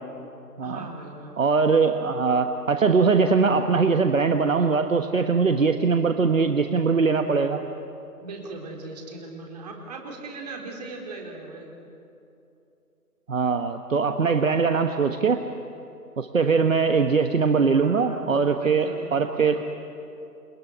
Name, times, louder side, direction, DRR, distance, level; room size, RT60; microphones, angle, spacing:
voice 1, 0.6-1.4 8.2-11.7 17.5-19.6, right 2 dB, 25° right, 1 dB, 4.1 m, -39 dB
voice 2, 1.4-7.6 13.3-15.4 16.2-19.6, right 5 dB, 55° right, 7 dB, 1.4 m, -21 dB
29.0 x 20.5 x 9.9 m, 2.7 s
figure-of-eight pair, 155°, 47 cm